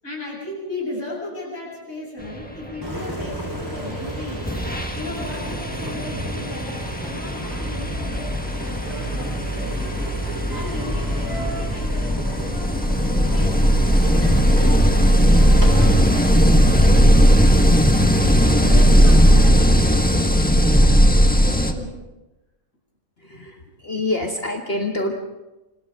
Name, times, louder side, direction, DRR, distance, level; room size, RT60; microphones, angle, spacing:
voice 1, 0.0-8.4 8.6-9.8 10.5-13.6 14.0-17.3 18.6-20.7 21.4-22.0, left 2 dB, 65° left, -5 dB, 8.4 m, -35 dB
Engine, 2.8-17.8, right 1 dB, 15° right, 4.1 m, -33 dB
sound 1, 3.9-4.1 4.4-21.7, equal, 5° left, 1.4 m, -17 dB
voice 2, 23.2-25.2, left 2 dB, 45° left, 1 dB, 1.8 m, -26 dB
29.0 x 27.0 x 3.7 m, 1.0 s
omnidirectional pair, 1.4 m